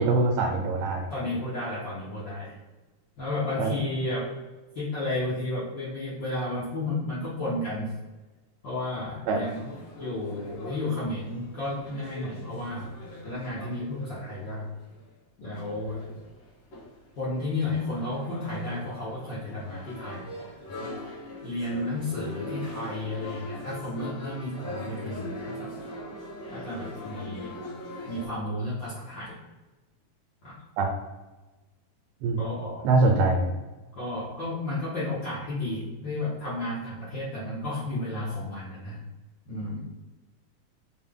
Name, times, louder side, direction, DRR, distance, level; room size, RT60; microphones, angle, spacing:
voice 1, 0.0-1.1 3.6-3.8 9.3-9.4 30.8-30.9 32.2-32.4 32.8-33.5, right 3 dB, 80° right, 1 dB, 1.7 m, -23 dB
voice 2, 1.1-2.6 3.2-4.3 4.7-7.9 8.6-9.7 10.0-12.9 13.2-14.7 15.4-16.0 17.1-20.9 21.4-25.7 26.5-27.5 28.0-29.3 30.4-30.5 32.4-32.9 33.9-39.0 39.5-39.8, left 2 dB, 80° left, -9 dB, 1.0 m, -32 dB
sound 1, 9.4-15.1 15.5-28.3, left 1 dB, 60° left, 2.2 m, -41 dB
5.6 x 2.2 x 3.5 m, 1.2 s
omnidirectional pair, 3.6 m